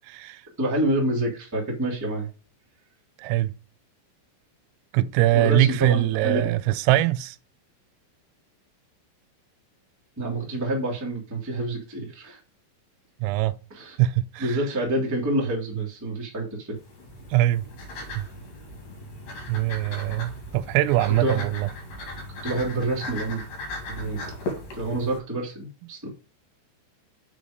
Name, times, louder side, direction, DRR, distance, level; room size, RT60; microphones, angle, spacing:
voice 1, 0.1-0.4 3.2-3.6 4.9-7.4 13.2-13.6 14.0-14.6 17.3-17.7 18.2-18.3 19.5-21.7, right 15 dB, 90° right, 3.2 m, -22 dB
voice 2, 0.6-2.3 5.3-6.5 10.2-12.4 13.7-14.0 14.4-16.7 21.2-21.5 22.4-23.4 23.9-24.2 24.7-26.1, right 1 dB, 10° right, 0.9 m, -27 dB
sound 1, 16.7-25.2, left 1 dB, 50° left, 3.0 m, -37 dB
6.7 x 5.3 x 5.1 m
omnidirectional pair, 5.8 m